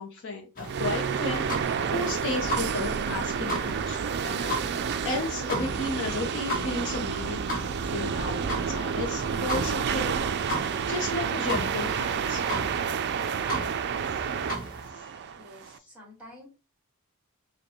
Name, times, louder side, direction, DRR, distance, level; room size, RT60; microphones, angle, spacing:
voice 1, 0.0-1.5 1.9-4.8 5.0-7.5 7.8-10.5 10.9-12.6 14.1-14.5 14.9-15.2, left 3 dB, 55° left, 0.7 m, -34 dB
sound 1, 0.6-14.9, equal, 40° left, 1.0 m, -36 dB
sound 2, 0.7-15.8, right 6 dB, 50° right, 0.4 m, -30 dB
voice 2, 15.4-16.5, left 1 dB, 5° right, 1.7 m, -49 dB
5.2 x 2.2 x 3.0 m
head